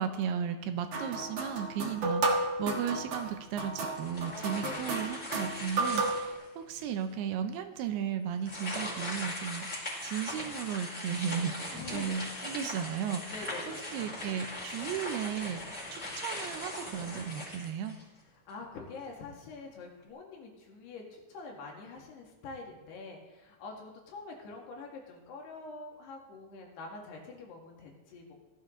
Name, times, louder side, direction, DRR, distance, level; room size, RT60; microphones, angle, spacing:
voice 1, 0.0-15.6 15.9-18.0, right 8 dB, 80° right, 7 dB, 2.7 m, -35 dB
sound 1, 0.9-6.3, right 2 dB, 55° right, 1.9 m, -33 dB
sound 2, 3.9-6.5 7.0-7.1 8.4-18.2, left 1 dB, 15° left, 4.3 m, -40 dB
voice 2, 4.3-5.0 11.7-12.2 13.3-13.9 18.5-28.3, left 4 dB, 75° left, 0 dB, 4.1 m, -45 dB
17.0 x 12.0 x 3.9 m, 1.1 s
omnidirectional pair, 4.8 m